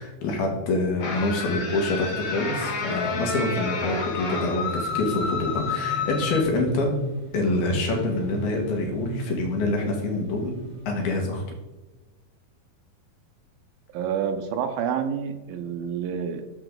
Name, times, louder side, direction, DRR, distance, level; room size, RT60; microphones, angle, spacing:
voice 1, 0.0-7.0 7.3-10.5 10.9-11.4, left 2 dB, 80° left, 1 dB, 3.6 m, -26 dB
sound 1, 1.0-6.4, left 5 dB, 60° left, 2.1 m, -30 dB
sound 2, 4.9-11.2, right 1 dB, 30° left, 0.8 m, -38 dB
voice 2, 13.9-16.5, right 7 dB, 80° right, 7 dB, 2.3 m, -28 dB
9.0 x 6.9 x 3.8 m, 1.1 s
omnidirectional pair, 4.3 m